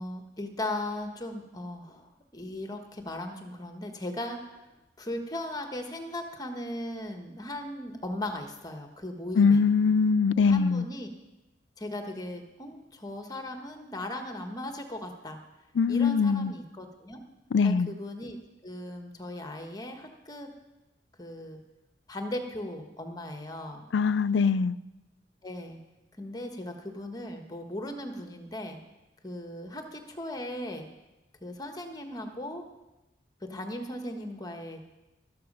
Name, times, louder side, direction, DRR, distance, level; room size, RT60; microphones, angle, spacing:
voice 1, 0.0-4.6 5.0-9.6 10.4-11.1 11.8-15.4 15.9-17.2 17.6-18.4 18.6-20.5 21.2-21.6 22.1-23.8 25.4-25.8 26.2-28.8 29.2-30.9 31.4-32.7 33.4-34.8, left 1 dB, 20° left, 1.4 m, -37 dB
voice 2, 9.4-10.9 15.8-16.5 17.5-17.9 23.9-24.8, left 5 dB, 75° left, 0.4 m, -22 dB
13.0 x 12.5 x 5.5 m
head